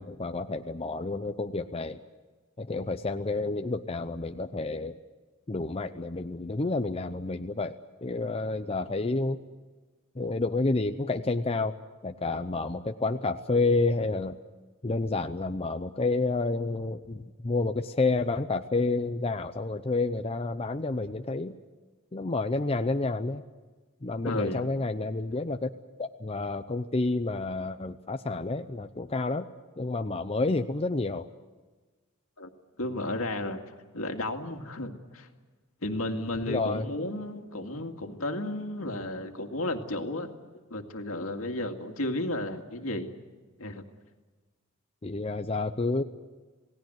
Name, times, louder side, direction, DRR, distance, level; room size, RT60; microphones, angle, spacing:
voice 1, 0.0-2.0 2.6-4.9 5.5-9.4 10.1-11.7 12.0-14.4 14.8-21.6 22.1-23.4 24.0-25.7 26.0-29.5 29.8-31.3 36.4-36.9 45.0-46.0, left 3 dB, 30° left, 7 dB, 0.7 m, -29 dB
voice 2, 24.2-24.7 32.4-32.5 32.8-33.6 33.9-35.3 35.8-40.3 40.7-43.1 43.6-43.8, left 1 dB, 75° left, 5 dB, 2.2 m, -33 dB
28.0 x 18.0 x 7.9 m, 1.3 s
head